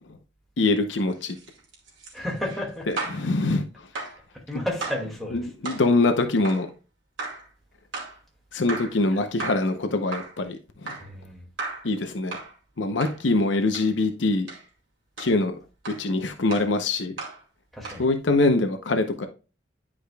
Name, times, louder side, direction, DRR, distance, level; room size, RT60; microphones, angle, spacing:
voice 1, 0.6-1.4 3.1-3.7 4.5-4.6 5.3-6.7 8.5-11.0 11.8-12.4 12.8-14.5 15.2-15.6 15.9-17.1 18.0-19.3, left 2 dB, 75° left, 0.8 m, -24 dB
sound 1, 1.1-3.3 3.9-4.2 4.8-5.1 5.6-5.9 6.4-6.7 7.2-7.5 7.9-8.2 8.7-9.0 9.4-9.7 10.1-10.4 10.9-11.1 11.6-11.9 12.3-12.5 13.0-13.2 13.7-13.9 14.5-14.7 15.2-15.4 15.8-16.1 16.5-16.7 17.2-17.4 17.8-18.1, right 3 dB, 90° right, 2.3 m, -35 dB
voice 2, 2.1-2.9 4.3-5.5 11.0-11.5 17.7-18.1, left 1 dB, ahead, 2.1 m, -32 dB
10.0 x 5.0 x 2.3 m
head